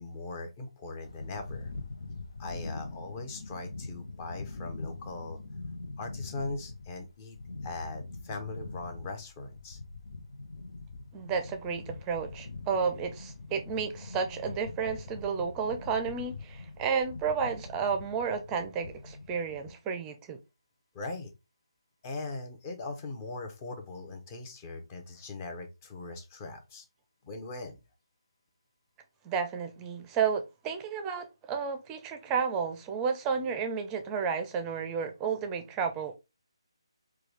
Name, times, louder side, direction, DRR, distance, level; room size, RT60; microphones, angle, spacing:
voice 1, 0.0-1.7 2.4-5.4 6.0-7.4 7.6-9.8 20.9-21.3 22.0-26.8 27.2-27.8, left 3 dB, 25° left, 0.8 m, -40 dB
sound 1, 1.0-19.7, left 3 dB, 70° left, 0.8 m, -43 dB
voice 2, 11.1-20.4 29.2-36.2, right 6 dB, 15° right, 0.6 m, -32 dB
4.6 x 2.3 x 3.3 m
figure-of-eight pair, 155°, 3 cm